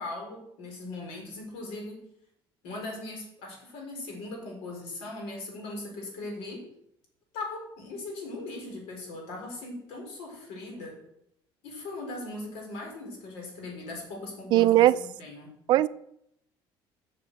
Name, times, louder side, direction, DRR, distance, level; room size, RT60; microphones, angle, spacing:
voice 1, 0.0-2.0 2.6-6.7 7.3-11.0 11.6-15.5, left 2 dB, 80° left, 4.3 m, -39 dB
voice 2, 14.5-15.0 15.7-15.9, right 14 dB, 50° right, 0.4 m, -19 dB
8.3 x 6.9 x 7.9 m
cardioid pair, 170°, 10 cm